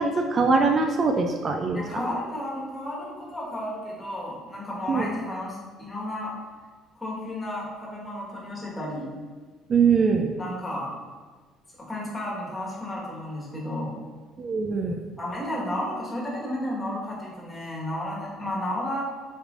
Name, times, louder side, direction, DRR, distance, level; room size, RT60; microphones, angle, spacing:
voice 1, 0.0-2.1 4.9-5.1 9.7-10.3 14.4-15.0, right 4 dB, 45° right, 4 dB, 0.3 m, -22 dB
voice 2, 1.7-6.3 6.9-9.1 10.4-10.9 11.8-13.9 15.2-19.0, left 1 dB, 15° left, -5 dB, 1.3 m, -32 dB
5.2 x 3.1 x 2.4 m, 1.5 s
supercardioid pair, 80°, 0 cm